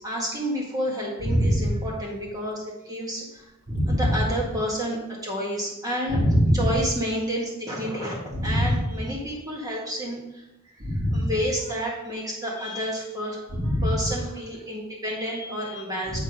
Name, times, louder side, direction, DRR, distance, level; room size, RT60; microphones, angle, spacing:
voice 1, 0.0-3.3 3.9-5.0 5.2-6.2 6.5-10.2 11.1-13.4 13.8-16.2, equal, 20° right, -3 dB, 1.9 m, -30 dB
voice 2, 1.2-1.8 3.7-4.2 6.1-6.8 8.3-9.0 10.8-11.3 13.5-14.0 16.1-16.2, equal, 35° right, -4 dB, 2.4 m, -23 dB
9.0 x 4.2 x 4.9 m, 0.92 s
head